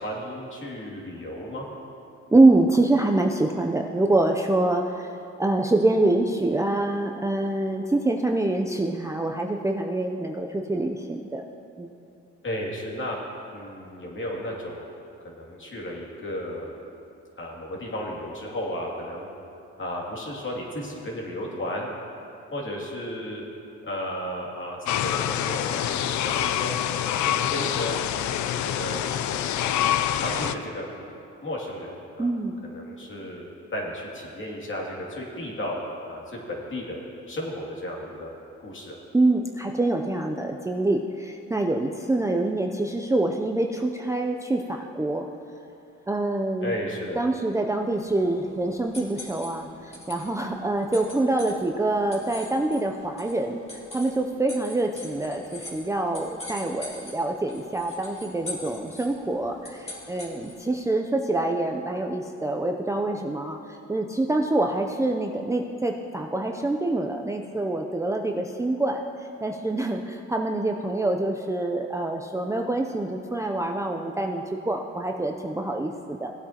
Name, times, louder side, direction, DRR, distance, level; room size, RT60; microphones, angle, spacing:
voice 1, 0.0-1.7 12.4-13.2 13.5-14.9 15.2-16.8 17.4-19.3 19.8-21.9 22.5-23.4 23.8-26.7 27.1-28.0 28.6-29.0 29.6-29.9 30.2-30.9 31.4-32.3 32.6-35.8 36.1-37.0 37.3-38.3 38.6-39.0 46.6-47.2, left 1 dB, 40° left, -3 dB, 2.5 m, -34 dB
voice 2, 2.3-5.1 5.4-11.4 11.8-11.9 32.2-32.5 39.1-45.3 46.1-46.7 47.2-76.3, right 2 dB, 10° right, 2 dB, 0.5 m, -25 dB
sound 1, 24.9-30.5, left 11 dB, 70° left, 0.5 m, -26 dB
sound 2, 47.9-60.7, left 1 dB, 20° left, 2.5 m, -43 dB
17.5 x 8.4 x 2.9 m, 2.7 s
cardioid pair, 90°, 30 cm